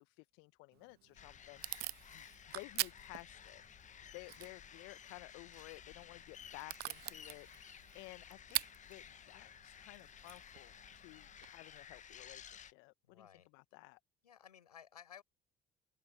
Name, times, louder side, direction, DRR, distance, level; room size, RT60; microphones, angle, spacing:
voice 1, 0.0-3.6 4.1-13.3 13.5-14.0, left 29 dB, 65° left, 1.3 m, -55 dB
Packing tape duct tape / Tearing, 0.7-11.5, right 18 dB, 55° right, 0.6 m, -46 dB
sound 1, 1.1-12.7, left 8 dB, 40° left, 1.3 m, -55 dB
voice 2, 13.1-13.5 14.2-15.2, left 8 dB, 85° left, 7.3 m, -56 dB
open air
figure-of-eight pair, 55°, 20 cm